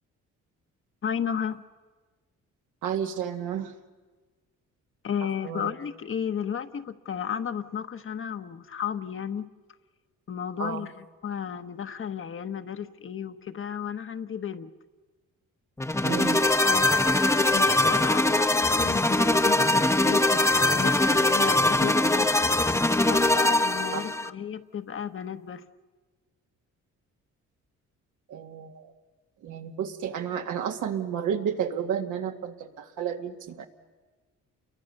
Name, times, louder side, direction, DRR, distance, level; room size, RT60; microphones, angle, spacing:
voice 1, 1.0-1.6 5.0-9.5 10.3-14.7 16.6-22.3 23.0-25.6, left 8 dB, 45° left, 9 dB, 1.1 m, -33 dB
voice 2, 2.8-3.7 5.4-5.7 10.6-10.9 16.0-16.5 23.9-24.0 28.3-28.9 29.4-33.7, right 8 dB, 85° right, 4 dB, 1.9 m, -31 dB
sound 1, 15.8-24.3, left 2 dB, 10° left, 0.9 m, -22 dB
29.5 x 23.0 x 6.6 m, 1.3 s
cardioid pair, 90°, 30 cm